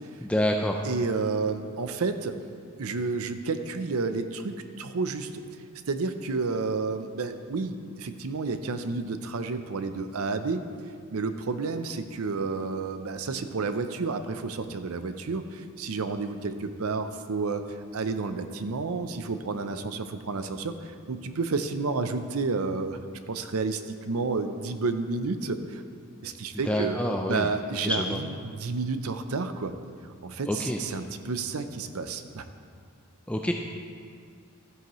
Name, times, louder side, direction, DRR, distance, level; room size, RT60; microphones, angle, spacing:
voice 1, 0.2-0.8 26.5-27.5 27.8-28.2 30.5-30.8 33.3-33.5, left 1 dB, 5° left, 2 dB, 0.4 m, -27 dB
voice 2, 0.8-2.4 2.8-5.4 5.9-10.6 11.1-23.0 23.3-25.8 26.2-27.0 27.2-29.7 30.2-32.5, right 4 dB, 80° right, 9 dB, 0.6 m, -30 dB
13.0 x 9.5 x 3.1 m, 2.1 s
head